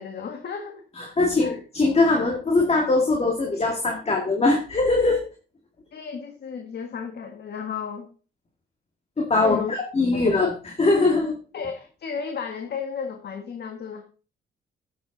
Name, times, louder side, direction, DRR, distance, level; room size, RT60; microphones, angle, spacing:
voice 1, 0.0-0.8 1.4-1.6 5.9-8.1 9.4-9.8 10.1-10.3 11.5-14.0, left 6 dB, 55° left, 5 dB, 1.5 m, -33 dB
voice 2, 1.0-5.2 9.2-11.4, left 3 dB, 30° left, 1 dB, 2.2 m, -21 dB
10.5 x 7.6 x 4.1 m, 0.36 s
cardioid pair, 90°, 20 cm